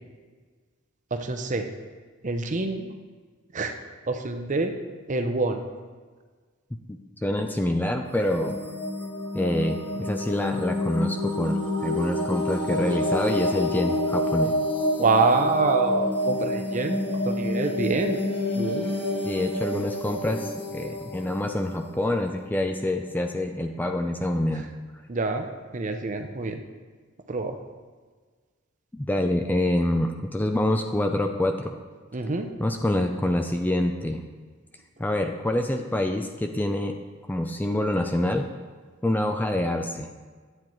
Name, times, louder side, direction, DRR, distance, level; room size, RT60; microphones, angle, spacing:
voice 1, 1.1-1.7 2.2-2.9 3.5-3.7 4.1-4.7 5.1-5.6 15.0-18.2 18.5-18.9 25.1-25.5 25.7-26.6 27.3-27.6 32.1-32.5, right 3 dB, 40° right, 6 dB, 0.6 m, -26 dB
voice 2, 7.2-8.6 9.3-14.5 19.2-24.7 28.9-31.8 32.6-34.2 35.0-37.0 37.3-38.5 39.0-40.1, left 1 dB, 10° left, 4 dB, 0.4 m, -26 dB
sound 1, 8.1-22.8, left 1 dB, 25° left, 1.6 m, -28 dB
9.8 x 8.6 x 3.1 m, 1.5 s
head